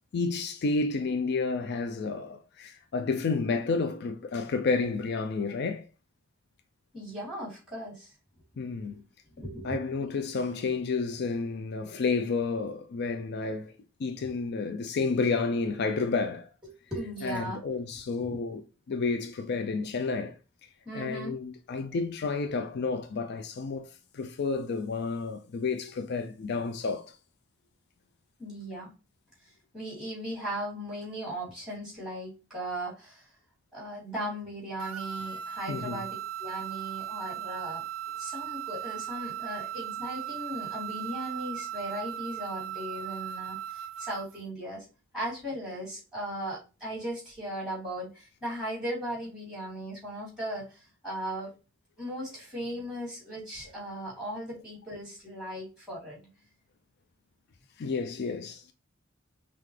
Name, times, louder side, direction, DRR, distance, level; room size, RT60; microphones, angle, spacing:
voice 1, 0.1-5.9 8.6-9.0 9.6-13.7 14.0-16.5 17.2-18.6 18.9-20.4 20.9-27.1 35.7-36.0 57.8-58.7, left 4 dB, 55° left, 0.4 m, -30 dB
voice 2, 6.9-8.1 8.8-9.0 9.4-10.1 16.6-17.6 18.2-18.4 20.8-21.4 28.4-28.9 29.7-33.2 33.7-37.8 38.2-44.8 45.1-51.5 52.0-56.2, equal, 5° right, 2.6 m, -37 dB
sound 1, 34.8-44.4, right 10 dB, 75° right, 0.4 m, -37 dB
5.7 x 2.4 x 3.2 m
head